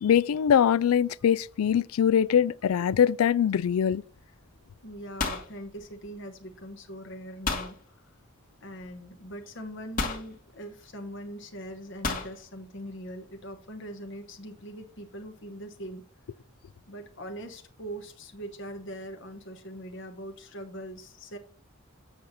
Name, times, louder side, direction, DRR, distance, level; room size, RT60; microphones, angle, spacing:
voice 1, 0.0-4.0, left 8 dB, 85° left, 0.3 m, -23 dB
sound 1, 4.2-4.6 4.8-6.4 7.5-7.8 8.9-9.0 10.0-10.3 12.0-12.3, left 3 dB, 40° left, 1.5 m, -32 dB
voice 2, 4.8-8.2 8.6-16.1 16.9-21.4, equal, 60° left, 1.1 m, -42 dB
7.8 x 6.6 x 4.0 m
head